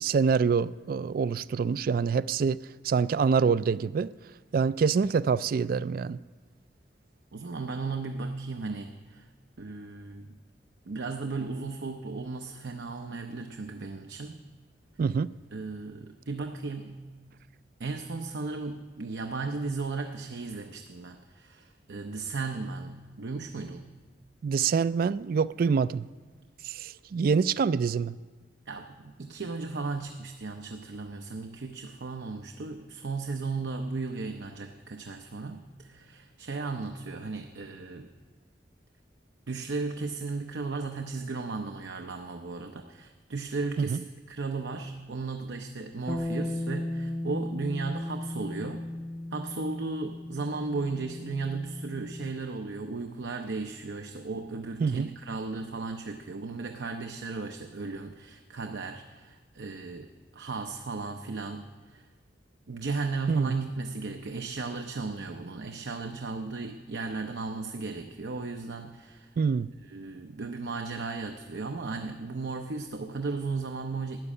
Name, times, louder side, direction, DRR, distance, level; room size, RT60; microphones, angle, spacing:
voice 1, 0.0-4.1 4.5-6.2 15.0-15.3 24.4-26.1 26.6-28.1 43.9-44.0 54.8-55.1 63.3-63.5 69.4-69.7, right 5 dB, 55° right, 0.3 m, -26 dB
voice 2, 7.3-9.3 9.6-10.4 10.8-14.4 15.5-16.9 17.8-23.8 28.7-38.1 39.5-48.9 49.3-62.0 62.7-69.3 69.9-74.2, right 3 dB, 85° right, 0.7 m, -35 dB
Bass guitar, 46.1-52.3, left 1 dB, 10° left, 0.4 m, -36 dB
12.0 x 7.5 x 9.8 m
head